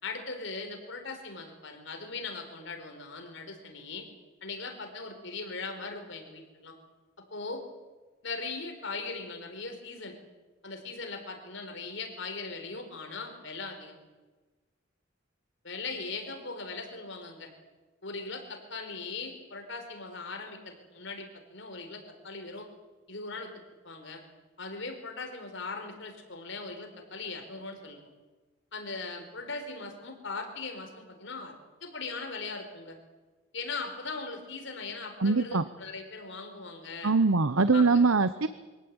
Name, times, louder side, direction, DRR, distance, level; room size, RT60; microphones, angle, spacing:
voice 1, 0.0-4.1 4.4-6.7 7.3-7.6 8.2-10.2 10.6-14.0 15.6-17.5 18.0-22.7 23.1-23.5 23.8-24.2 24.6-28.1 28.7-31.6 31.8-33.0 33.5-37.1 37.7-38.0, left 3 dB, 60° left, 4 dB, 4.5 m, -39 dB
voice 2, 35.2-35.6 37.0-38.5, right 4 dB, 80° right, 13 dB, 0.9 m, -23 dB
24.5 x 17.0 x 8.8 m, 1.2 s
head